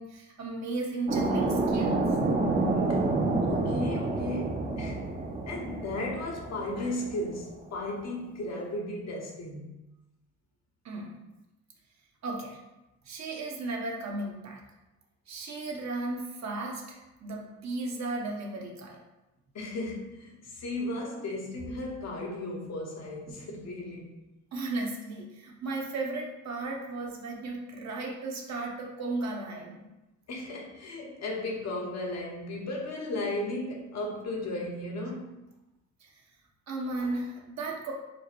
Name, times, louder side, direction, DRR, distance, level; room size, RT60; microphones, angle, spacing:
voice 1, 0.0-2.0 10.8-11.1 12.2-12.6 13.0-14.6 15.3-19.0 23.3-23.4 24.5-29.9 36.0-36.2 36.7-37.9, right 2 dB, 60° right, -1 dB, 1.1 m, -35 dB
sound 1, 1.1-7.4, right 2 dB, 30° right, 0.6 m, -28 dB
voice 2, 3.4-5.1 5.5-9.7 19.5-24.2 30.3-35.4, left 1 dB, 60° left, -1 dB, 1.1 m, -35 dB
4.5 x 2.1 x 4.4 m, 0.98 s
cardioid pair, 90°, 30 cm